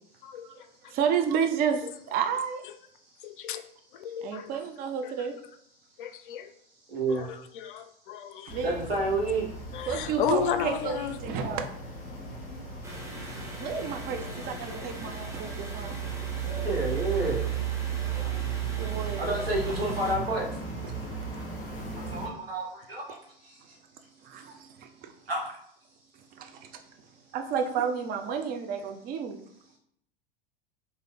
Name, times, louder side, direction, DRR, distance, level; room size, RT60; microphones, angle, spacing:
voice 1, 0.2-0.7 3.2-3.6 3.9-4.5 5.0-5.1 6.0-6.5 7.1-8.6 9.7-11.2, left 8 dB, 60° left, 10 dB, 0.5 m, -33 dB
voice 2, 0.9-2.6 4.2-5.3 8.5-8.8 9.9-11.7 13.2-16.0 18.7-19.2 20.8-20.9 24.2-25.1 26.4-26.7 27.3-29.4, right 7 dB, 30° right, 6 dB, 0.5 m, -31 dB
voice 3, 6.9-7.3 8.6-9.5 16.6-17.5 19.2-20.5 22.1-23.0 23.4-23.7 25.3-25.5, right 2 dB, 80° right, -2 dB, 1.3 m, -29 dB
sound 1, 8.5-22.3, right 6 dB, 30° left, 1.4 m, -35 dB
sound 2, 12.8-20.2, right 1 dB, 10° right, 0.9 m, -43 dB
3.1 x 2.6 x 3.9 m, 0.70 s
figure-of-eight pair, 85°, 29 cm